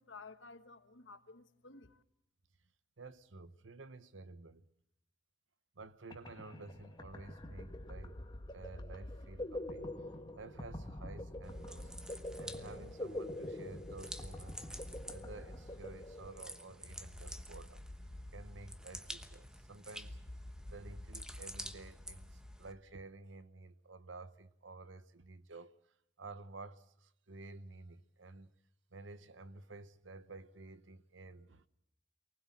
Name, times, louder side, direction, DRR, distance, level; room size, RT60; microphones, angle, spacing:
voice 1, 0.0-2.0, left 4 dB, 75° left, 1.4 m, -54 dB
voice 2, 3.0-4.7 5.8-8.2 8.5-9.9 10.4-11.9 12.4-14.7 15.1-17.8 18.3-20.2 20.7-25.8 26.2-28.5 28.9-31.7, right 3 dB, 80° right, 1.1 m, -52 dB
sound 1, 5.8-5.9 6.1-16.7, left 1 dB, 25° left, 1.8 m, -46 dB
sound 2, 7.4-23.0, left 1 dB, 40° left, 1.2 m, -51 dB
sound 3, 11.4-22.7, right 1 dB, 5° right, 1.1 m, -51 dB
24.0 x 19.5 x 7.4 m
head